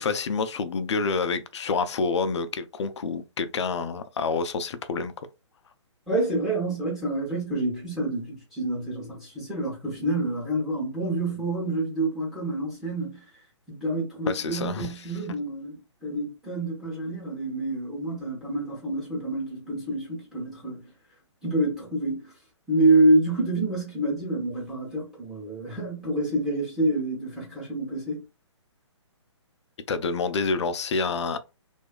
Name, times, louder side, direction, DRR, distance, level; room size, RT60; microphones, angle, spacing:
voice 1, 0.0-5.1 14.3-14.9 29.9-31.4, left 4 dB, 65° left, 0.5 m, -28 dB
voice 2, 6.1-13.2 13.7-20.8 21.4-22.3 22.7-28.2, right 2 dB, ahead, 0.8 m, -27 dB
2.7 x 2.4 x 2.2 m
hypercardioid pair, 145°, 16 cm